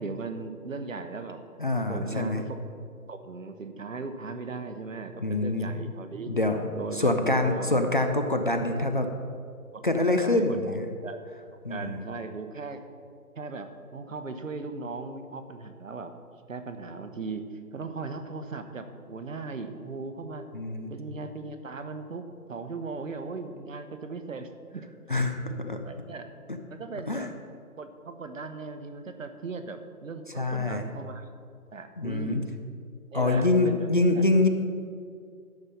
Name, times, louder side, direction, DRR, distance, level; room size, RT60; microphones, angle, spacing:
voice 1, 0.0-1.4 1.9-2.6 3.1-6.3 6.7-7.9 9.7-9.8 10.2-10.8 11.0-11.2 11.7-12.8 13.4-16.1 16.5-20.5 20.9-24.9 25.8-26.3 26.7-27.3 27.8-31.3 31.7-32.6 33.1-33.9, right 4 dB, 60° right, 8 dB, 1.0 m, -38 dB
voice 2, 1.6-2.4 5.2-5.9 6.3-9.1 9.8-10.9 11.6-12.0 20.5-20.9 25.1-25.8 26.5-26.6 27.1-27.3 30.4-30.8 32.0-32.4 33.1-34.5, left 2 dB, 35° left, 6 dB, 0.5 m, -25 dB
12.5 x 5.4 x 5.5 m, 2.3 s
figure-of-eight pair, 150°, 45 cm